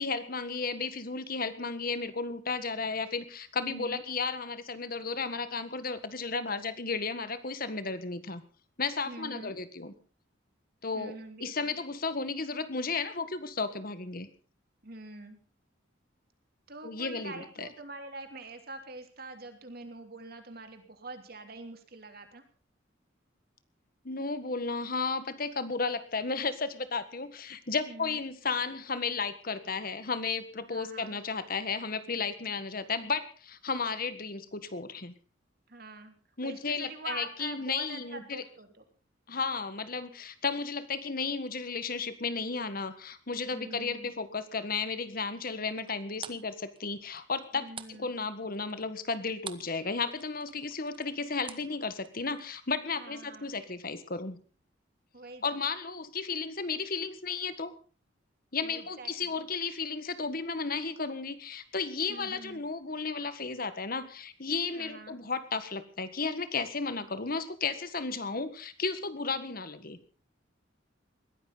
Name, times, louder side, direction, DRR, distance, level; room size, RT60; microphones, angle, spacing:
voice 1, 0.0-8.4 8.8-9.9 10.8-11.1 11.4-14.3 16.8-17.7 24.0-35.1 36.4-38.4 39.3-54.4 55.4-57.7 58.5-70.0, left 4 dB, 50° left, 12 dB, 1.6 m, -34 dB
voice 2, 3.6-4.0 9.0-9.6 10.9-11.8 14.8-15.4 16.7-22.4 27.8-28.2 30.7-31.2 35.7-36.1 36.4-38.8 43.5-44.1 47.5-48.1 53.0-53.6 55.1-55.6 58.6-59.5 62.1-62.6 64.7-65.2, right 2 dB, 50° right, 7 dB, 3.1 m, -45 dB
sound 1, 45.8-49.8 50.1-52.5, right 7 dB, 25° right, 1.1 m, -46 dB
21.0 x 15.5 x 4.0 m, 0.38 s
head